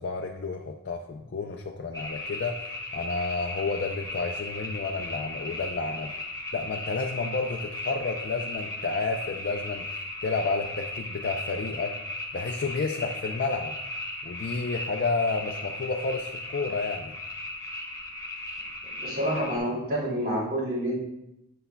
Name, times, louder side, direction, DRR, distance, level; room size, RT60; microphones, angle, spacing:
voice 1, 0.0-2.6 2.9-6.1 6.5-9.9 10.2-12.0 12.3-13.7 14.2-17.1, left 4 dB, 50° left, 2 dB, 0.4 m, -30 dB
sound 1, 1.9-19.6, left 1 dB, 15° left, 0.7 m, -37 dB
voice 2, 19.0-21.0, equal, 40° right, -5 dB, 2.7 m, -28 dB
8.1 x 7.9 x 2.2 m, 0.88 s
head